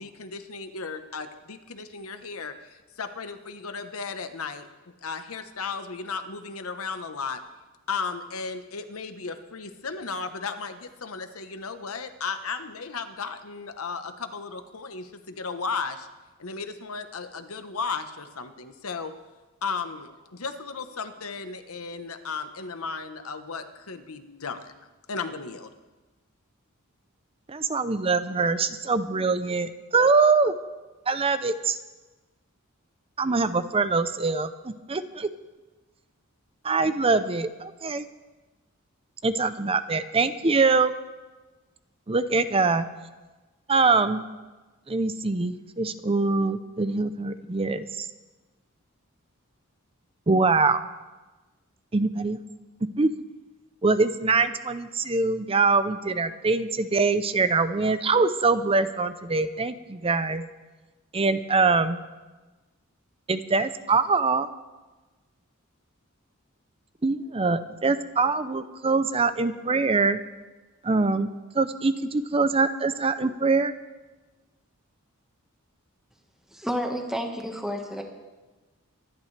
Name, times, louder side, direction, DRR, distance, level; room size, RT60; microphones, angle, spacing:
voice 1, 0.0-7.4 7.9-16.1 16.4-19.1 19.6-24.7 25.1-25.7, left 4 dB, 85° left, 8 dB, 1.1 m, -35 dB
voice 2, 27.5-30.5 31.1-31.8 33.2-35.3 36.6-38.1 39.2-40.9 42.1-42.9 43.7-44.2 44.9-48.1 50.3-50.8 51.9-52.4 53.0-53.1 53.8-60.4 61.1-62.0 63.3-64.5 67.0-70.2 70.8-71.3 71.5-73.7, right 4 dB, 25° right, 12 dB, 0.6 m, -23 dB
voice 3, 76.5-78.0, equal, ahead, 2 dB, 1.5 m, -30 dB
24.0 x 11.5 x 3.3 m, 1.2 s
head